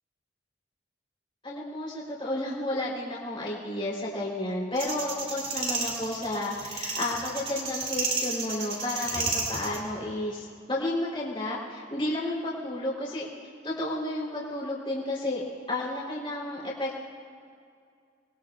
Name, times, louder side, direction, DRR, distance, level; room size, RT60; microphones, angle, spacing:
voice 1, 1.4-13.3 13.6-17.0, left 1 dB, 30° left, -5 dB, 3.6 m, -32 dB
sound 1, 4.7-9.8, right 3 dB, 30° right, 2.6 m, -32 dB
27.0 x 21.5 x 2.4 m, 2.2 s
head